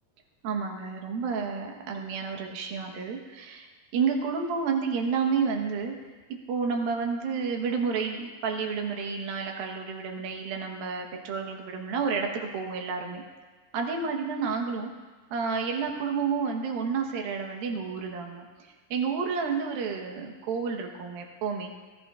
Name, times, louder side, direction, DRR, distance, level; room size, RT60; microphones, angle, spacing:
voice 1, 0.4-5.9 6.5-13.2 13.7-14.9 15.3-18.5 18.9-21.7, right 5 dB, 90° right, 2 dB, 3.1 m, -30 dB
20.5 x 13.5 x 2.5 m, 1.3 s
omnidirectional pair, 4.0 m